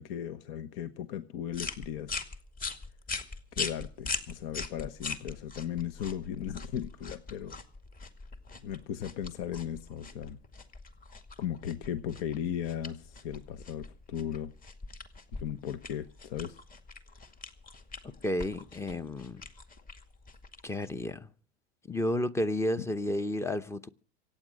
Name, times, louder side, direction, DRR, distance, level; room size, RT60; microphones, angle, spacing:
voice 1, 0.0-2.2 3.5-7.6 8.6-10.4 11.4-14.5 15.3-16.6 22.8-22.9, left 10 dB, 60° left, 1.2 m, -37 dB
sound 1, 1.5-21.1, left 4 dB, 25° left, 2.1 m, -42 dB
voice 2, 18.2-19.4 20.6-21.3 21.9-23.9, left 1 dB, 10° left, 0.7 m, -31 dB
24.0 x 9.1 x 6.3 m
supercardioid pair, 115°, 33 cm